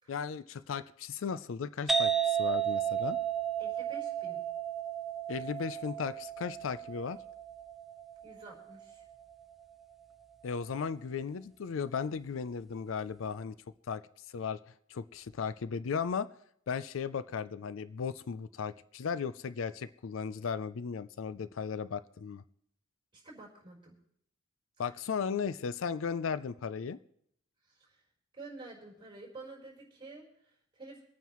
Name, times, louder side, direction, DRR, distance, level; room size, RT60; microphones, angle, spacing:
voice 1, 0.1-3.2 5.3-7.2 10.4-13.5 13.9-14.0 14.3-14.6 14.9-16.3 16.7-22.4 24.8-27.0, left 6 dB, 75° left, 15 dB, 0.4 m, -36 dB
sound 1, 1.9-9.3, right 8 dB, ahead, 0.7 m, -33 dB
voice 2, 3.6-4.4 8.2-9.0 23.1-24.0 27.6-28.0 28.3-31.0, right 3 dB, 25° right, -4 dB, 4.3 m, -50 dB
25.5 x 9.2 x 3.1 m, 0.71 s
head